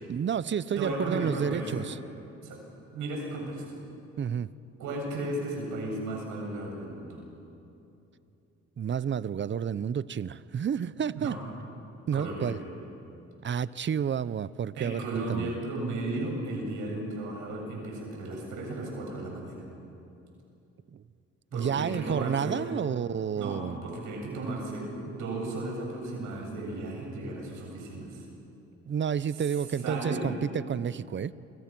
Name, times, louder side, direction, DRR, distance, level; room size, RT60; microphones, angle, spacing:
voice 1, 0.1-2.0 4.2-4.5 8.8-11.4 12.1-12.6 13.4-15.6 20.9-21.0 21.5-23.9 28.9-31.3, right 8 dB, 40° right, 18 dB, 0.7 m, -30 dB
voice 2, 0.8-1.9 2.4-2.6 2.9-3.8 4.8-7.2 11.1-11.4 12.1-12.5 14.8-19.5 21.5-22.6 23.4-28.2 29.8-30.3, right 2 dB, 85° right, 0 dB, 7.6 m, -35 dB
29.5 x 25.0 x 6.1 m, 2.8 s
cardioid pair, 90°, 30 cm